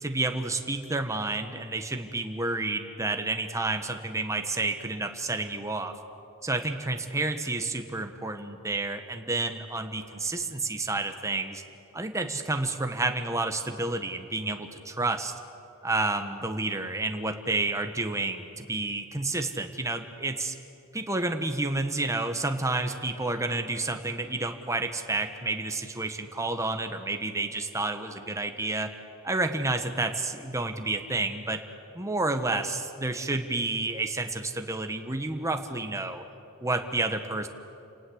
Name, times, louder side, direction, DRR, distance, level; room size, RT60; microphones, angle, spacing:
voice 1, 0.0-5.9 6.4-11.6 11.9-15.3 15.8-20.5 20.9-28.9 29.2-31.6 31.9-36.2 36.6-37.5, right 2 dB, 15° right, 6 dB, 1.3 m, -30 dB
28.5 x 18.5 x 8.0 m, 2.7 s
head